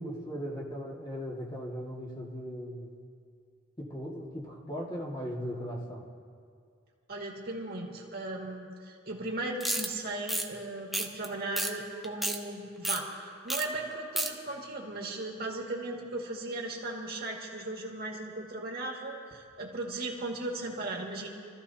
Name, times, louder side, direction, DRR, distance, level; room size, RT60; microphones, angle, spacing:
voice 1, 0.0-3.1 3.8-6.0, equal, 25° left, -4 dB, 2.0 m, -38 dB
voice 2, 7.1-21.3, right 2 dB, 55° right, -1 dB, 2.1 m, -37 dB
sound 1, 9.6-9.9 10.3-10.5 10.9-11.3 11.6-11.7 12.0-12.4 12.8-13.0 13.5-13.6 13.9-14.3, right 1 dB, ahead, 0.8 m, -30 dB
27.0 x 14.5 x 2.8 m, 2.2 s
head